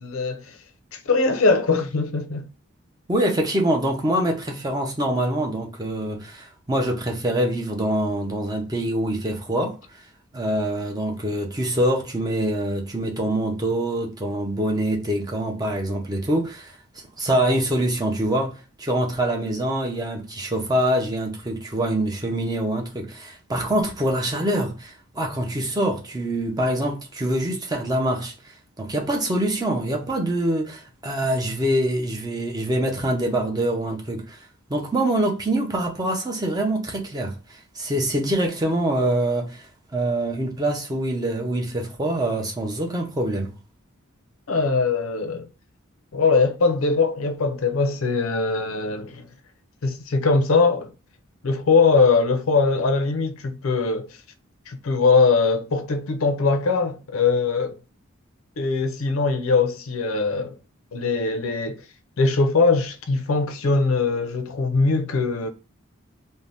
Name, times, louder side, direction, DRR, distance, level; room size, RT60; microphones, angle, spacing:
voice 1, 0.0-0.6 0.9-2.5 44.5-45.5 46.1-49.3 49.8-50.9 51.4-54.1 54.7-57.8 58.6-60.6 60.9-61.8 62.2-65.5, left 4 dB, 70° left, 0.5 m, -21 dB
voice 2, 3.1-9.8 10.3-16.8 17.2-34.4 34.7-39.7 39.9-43.5, right 1 dB, 20° right, 0.5 m, -25 dB
2.6 x 2.1 x 3.2 m
head